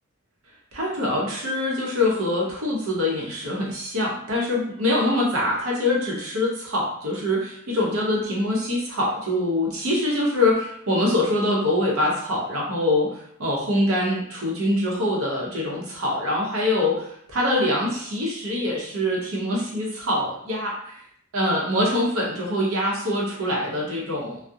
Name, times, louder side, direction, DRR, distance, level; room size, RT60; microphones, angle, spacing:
voice 1, 0.7-13.1 13.4-20.9 21.3-24.4, left 1 dB, 80° right, -2 dB, 0.8 m, -24 dB
2.3 x 2.0 x 2.7 m, 0.67 s
head